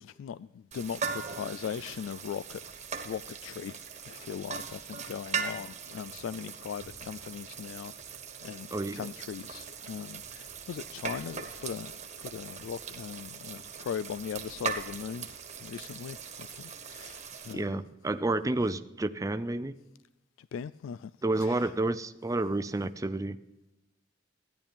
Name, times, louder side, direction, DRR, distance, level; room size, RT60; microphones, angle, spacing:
voice 1, 0.0-2.6 3.0-7.9 8.4-11.9 12.2-17.8 20.4-21.1 21.4-21.7, left 7 dB, 90° left, 0.3 m, -39 dB
sound 1, 0.7-17.5, right 6 dB, 35° right, 1.3 m, -40 dB
voice 2, 8.7-9.1 17.5-19.8 21.2-23.4, right 2 dB, 20° right, 0.5 m, -30 dB
14.5 x 10.5 x 3.5 m
head